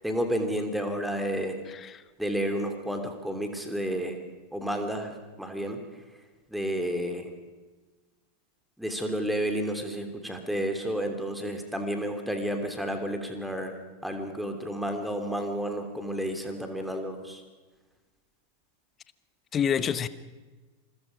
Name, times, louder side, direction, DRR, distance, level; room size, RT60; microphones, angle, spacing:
voice 1, 0.0-1.6 2.2-4.2 4.5-5.8 6.5-7.3 8.8-13.7 14.0-17.4, equal, ahead, 5 dB, 3.0 m, -31 dB
voice 2, 1.7-2.0 19.5-20.1, left 8 dB, 25° left, 15 dB, 1.0 m, -27 dB
27.5 x 21.5 x 5.2 m, 1.2 s
figure-of-eight pair, 90°, 0 cm